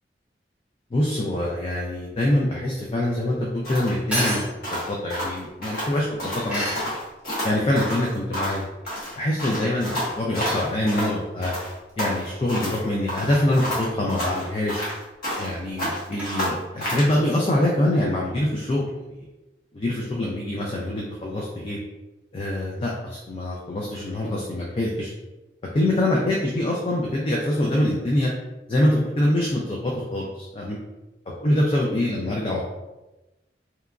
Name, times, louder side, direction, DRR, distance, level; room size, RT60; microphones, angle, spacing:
voice 1, 0.9-6.9 7.4-8.6 9.2-11.5 12.0-14.8 15.4-19.2 19.7-21.8 22.3-25.1 25.7-28.3 28.7-30.8 31.4-32.6, left 1 dB, 30° left, -3 dB, 0.3 m, -24 dB
sound 1, 1.9-17.4, equal, 5° right, 0.8 m, -36 dB
sound 2, 3.6-5.9 6.2-6.5 6.7-8.6 8.9-11.1 11.4-12.8 13.1-15.5 15.8-17.1, equal, 55° left, 1.0 m, -30 dB
2.9 x 2.3 x 2.3 m, 1.0 s
head